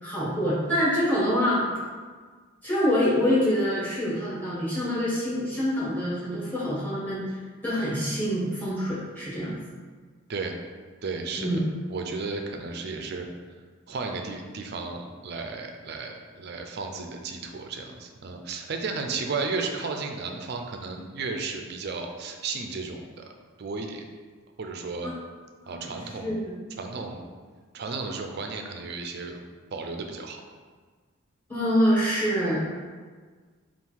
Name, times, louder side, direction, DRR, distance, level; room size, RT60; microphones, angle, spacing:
voice 1, 0.0-1.6 2.6-7.3 7.6-9.6 11.4-11.6 25.0-25.1 25.6-25.8 26.2-26.5 31.5-32.6, equal, 10° left, -9 dB, 1.3 m, -25 dB
voice 2, 11.0-11.6 11.9-13.3 13.9-23.2 23.6-24.0 24.6-25.1 25.7-26.4 26.8-27.3 27.7-29.4 29.7-30.4, right 4 dB, 50° right, 4 dB, 0.4 m, -34 dB
3.6 x 2.5 x 4.5 m, 1.5 s
head